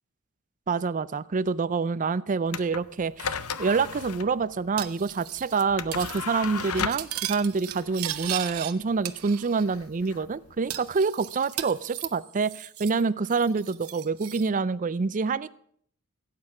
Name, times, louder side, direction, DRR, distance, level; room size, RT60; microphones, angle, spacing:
voice 1, 0.7-15.6, right 4 dB, 35° right, 18 dB, 0.4 m, -27 dB
sound 1, 2.5-11.0, left 7 dB, 85° left, 0.7 m, -37 dB
Cutlery silverware, 4.8-5.6 5.9-6.2 6.4-8.7 9.0-9.8 10.0-10.1 10.7-13.0 13.3-14.5, right 12 dB, 75° right, 0.9 m, -36 dB
16.5 x 8.6 x 6.0 m, 0.64 s
head